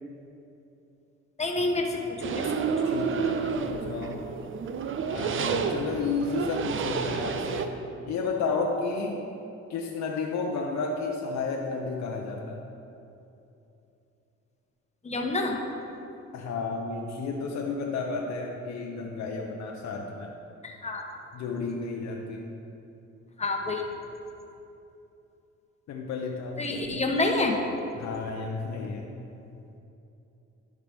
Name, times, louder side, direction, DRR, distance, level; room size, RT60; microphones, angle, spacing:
voice 1, 1.4-2.4 15.0-15.5 20.6-21.0 23.4-23.8 26.6-27.5, left 2 dB, 20° left, 2 dB, 1.0 m, -28 dB
sound 1, 2.2-7.7, right 6 dB, 45° right, 0.5 m, -30 dB
voice 2, 2.9-4.3 5.1-7.7 8.0-9.3 9.7-12.6 16.3-20.3 21.3-22.5 25.9-26.7 28.0-29.2, left 4 dB, 65° left, 0 dB, 0.7 m, -32 dB
11.5 x 4.8 x 3.5 m, 2.8 s
cardioid pair, 90°, 30 cm